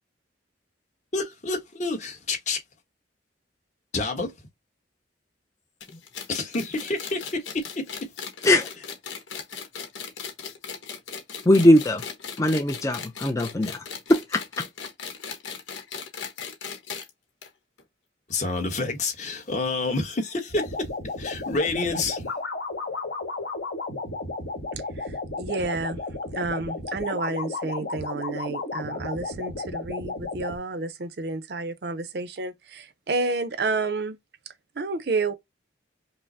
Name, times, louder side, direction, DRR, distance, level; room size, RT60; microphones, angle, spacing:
voice 1, 1.1-2.6 3.9-4.3 6.3-8.1 18.3-20.9 21.2-22.2, left 3 dB, 40° left, 1.1 m, -28 dB
sound 1, 5.8-17.1 17.4-17.5 17.8-17.9 18.7-18.8, left 6 dB, 85° left, 1.1 m, -37 dB
voice 2, 11.5-12.0 12.4-13.8 14.1-14.6, left 1 dB, 15° left, 0.4 m, -20 dB
sound 2, 20.5-30.6, left 3 dB, 70° left, 1.6 m, -33 dB
voice 3, 25.0-26.0 26.3-34.2 34.8-35.3, right 3 dB, 55° right, 0.5 m, -30 dB
5.4 x 2.0 x 2.6 m
head